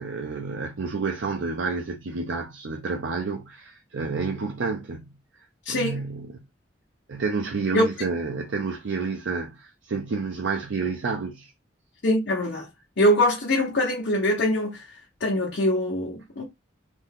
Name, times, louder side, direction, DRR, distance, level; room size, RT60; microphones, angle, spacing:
voice 1, 0.0-5.1 5.7-6.4 7.1-11.5, right 4 dB, 75° right, 0.5 m, -29 dB
voice 2, 5.6-6.0 7.7-7.8 12.0-12.7 13.0-14.8 15.2-16.4, left 1 dB, 65° left, 0.9 m, -23 dB
2.7 x 2.6 x 3.7 m
head